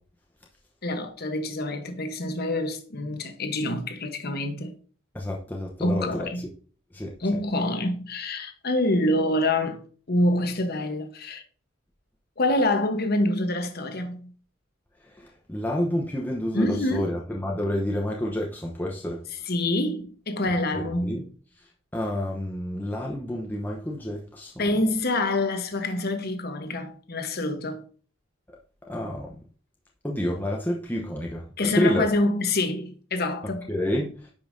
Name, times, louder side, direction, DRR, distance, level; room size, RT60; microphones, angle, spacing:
voice 1, 0.8-4.7 5.8-6.5 7.2-9.8 10.1-11.4 12.4-14.3 16.5-17.1 19.3-21.3 24.6-27.8 31.6-33.7, left 1 dB, 55° left, 1.0 m, -26 dB
voice 2, 5.1-6.3 6.9-7.1 15.2-19.2 20.4-21.2 21.9-24.6 28.9-29.3 30.0-31.4 31.7-32.1 33.7-34.2, left 1 dB, 10° left, 0.8 m, -29 dB
9.8 x 5.5 x 2.6 m
head